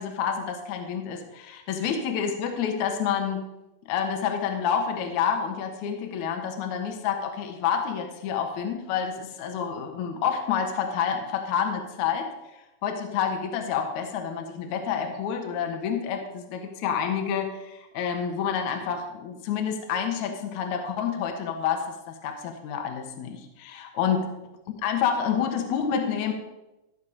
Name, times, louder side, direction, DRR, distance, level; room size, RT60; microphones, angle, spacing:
voice 1, 0.0-3.4 3.9-12.3 12.8-24.3 24.8-26.3, left 7 dB, 65° left, 4 dB, 2.0 m, -28 dB
14.5 x 5.7 x 5.0 m, 0.97 s
omnidirectional pair, 4.7 m